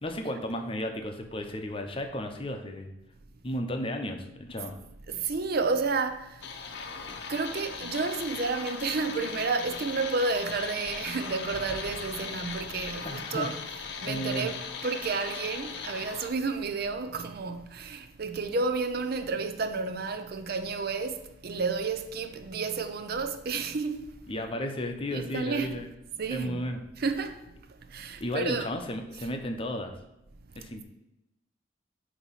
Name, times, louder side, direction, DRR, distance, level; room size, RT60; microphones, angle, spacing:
voice 1, 0.0-2.9 3.4-4.8 13.0-13.5 14.1-14.5 24.3-25.9 26.3-26.8 28.2-30.0 30.6-30.8, left 1 dB, 30° left, 0.7 m, -34 dB
voice 2, 5.1-6.5 7.1-13.5 14.0-24.1 25.1-25.8 26.2-26.6 27.0-27.4 27.9-28.7, right 4 dB, 55° right, 0.5 m, -31 dB
sound 1, 6.4-16.3, left 5 dB, 60° left, 0.7 m, -39 dB
8.0 x 2.9 x 5.7 m
head